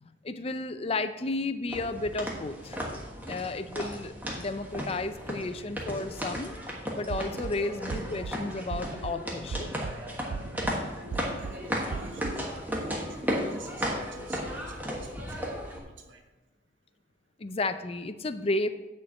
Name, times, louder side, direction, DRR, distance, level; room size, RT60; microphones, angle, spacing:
voice 1, 0.0-2.8 3.3-6.5 6.9-9.7 17.4-18.7, left 2 dB, 30° left, 11 dB, 0.5 m, -32 dB
sound 1, 1.7-15.8, equal, 10° right, 1.3 m, -35 dB
sound 2, 7.1-7.5 7.9-8.3 8.7-9.1 9.5-9.9 10.3-10.7 11.1-11.5 11.9-12.3, right 5 dB, 60° right, 0.3 m, -37 dB
voice 2, 10.5-16.2, equal, 90° right, 4 dB, 1.3 m, -48 dB
9.3 x 4.5 x 7.2 m, 1.1 s
head